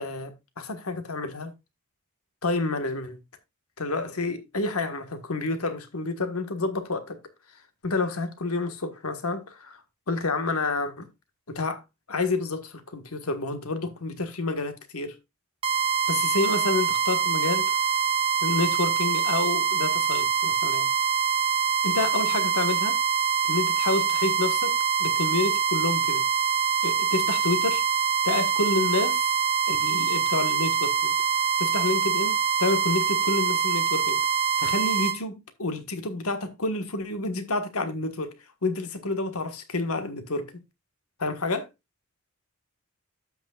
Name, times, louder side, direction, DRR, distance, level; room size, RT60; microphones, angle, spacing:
voice 1, 0.0-1.5 2.4-3.2 3.8-7.2 7.8-9.8 10.1-11.1 11.5-11.8 12.1-15.1 16.1-17.7 18.4-20.9 21.8-23.0 23.4-26.2 26.8-27.8 28.2-29.3 29.7-31.1 31.6-34.2 34.6-38.3 38.6-40.6 41.2-41.7, left 3 dB, 80° left, 1.5 m, -29 dB
sound 1, 15.6-35.2, right 6 dB, 25° right, 0.6 m, -24 dB
13.5 x 6.1 x 2.4 m
head